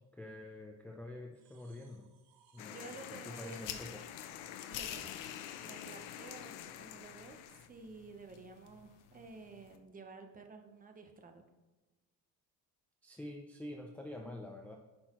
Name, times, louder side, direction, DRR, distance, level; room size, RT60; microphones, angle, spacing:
voice 1, 0.1-2.1 2.5-4.0 13.0-14.8, left 1 dB, 5° left, 0 dB, 0.5 m, -47 dB
sound 1, 1.3-6.0, right 9 dB, 75° right, 1.1 m, -66 dB
sound 2, 2.6-7.7, left 11 dB, 90° left, 0.7 m, -48 dB
voice 2, 2.7-3.8 4.7-5.1 5.6-11.4, right 3 dB, 20° right, 5 dB, 0.8 m, -52 dB
sound 3, 3.6-9.8, left 9 dB, 55° left, 0.8 m, -49 dB
9.8 x 6.3 x 3.0 m, 1.2 s
cardioid pair, 155°, 38 cm